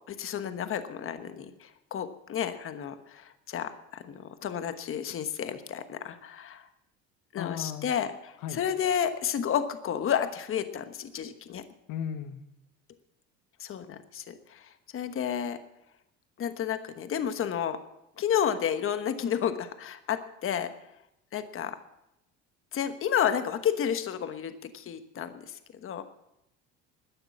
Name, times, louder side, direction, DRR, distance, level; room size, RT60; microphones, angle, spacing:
voice 1, 0.1-6.7 7.3-11.6 13.6-15.6 16.4-17.8 18.2-20.7 21.3-21.8 22.7-26.0, left 9 dB, 40° left, 10 dB, 1.2 m, -31 dB
voice 2, 7.4-7.9 8.4-8.6 11.9-12.4, left 8 dB, 70° left, 10 dB, 1.3 m, -35 dB
14.0 x 9.8 x 7.2 m, 0.84 s
supercardioid pair, 85°, 33 cm